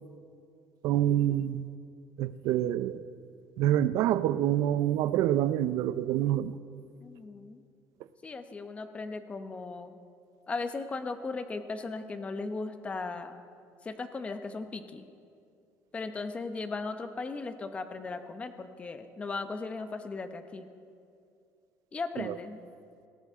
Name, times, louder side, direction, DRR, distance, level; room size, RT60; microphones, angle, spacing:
voice 1, 0.8-1.7 2.2-3.0 3.6-6.6 22.3-22.4, right 12 dB, 70° right, 15 dB, 0.5 m, -26 dB
voice 2, 7.0-7.6 8.2-10.0 10.5-13.4 13.8-15.1 15.9-20.7 21.9-22.6, left 3 dB, 20° left, 9 dB, 0.9 m, -37 dB
18.0 x 18.0 x 3.7 m, 2.4 s
cardioid pair, 150°, 6 cm